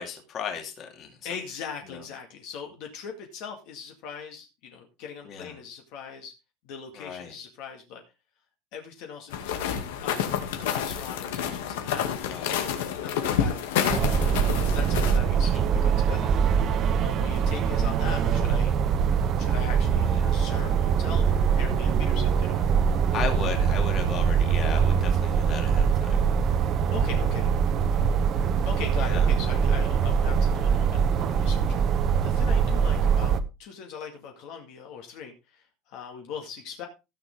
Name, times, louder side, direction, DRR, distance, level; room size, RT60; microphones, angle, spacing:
voice 1, 0.0-1.3 1.9-2.0 5.2-5.6 6.9-7.4 12.2-12.7 15.4-15.6 20.1-20.4 23.1-26.2 29.0-29.3, left 7 dB, 30° left, 3 dB, 2.6 m, -36 dB
voice 2, 1.2-6.3 6.6-8.0 8.7-12.5 13.0-14.4 14.7-16.6 16.9-18.7 19.4-22.7 26.9-27.5 28.7-36.9, left 7 dB, 50° left, 2 dB, 2.1 m, -40 dB
sound 1, 9.3-15.2, left 8 dB, 80° left, 2.4 m, -29 dB
sound 2, 13.9-33.4, right 7 dB, 30° right, 0.9 m, -23 dB
16.0 x 6.9 x 3.7 m, 0.26 s
cardioid pair, 170°, 0 cm